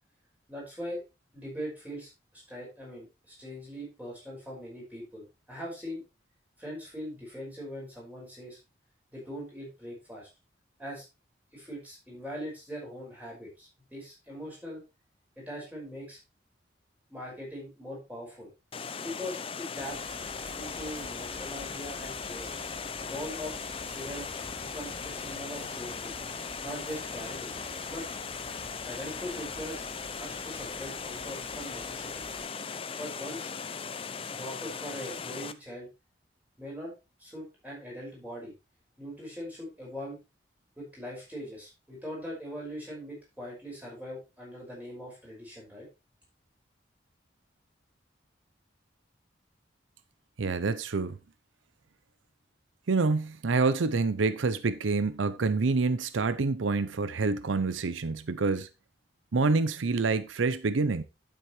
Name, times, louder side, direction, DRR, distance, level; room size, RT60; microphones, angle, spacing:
voice 1, 0.5-1.0 1.3-6.0 6.6-8.6 9.1-10.3 10.8-11.0 11.5-14.8 15.4-16.2 17.1-18.5 19.0-20.1 20.6-22.5 23.0-24.3 24.6-26.1 26.6-27.6 27.9-28.0 28.8-29.8 30.2-32.3 33.0-33.5 34.3-35.9 36.6-36.9 37.2-38.5 39.0-40.2 40.8-45.9, equal, 10° right, 5.4 m, -41 dB
Water, 18.7-35.5, left 5 dB, 30° left, 0.5 m, -38 dB
sound 1, 19.8-32.4, right 2 dB, 45° right, 3.7 m, -49 dB
voice 2, 50.4-51.2 52.9-58.7 59.3-61.0, right 3 dB, 90° right, 0.6 m, -27 dB
9.3 x 8.1 x 3.1 m
head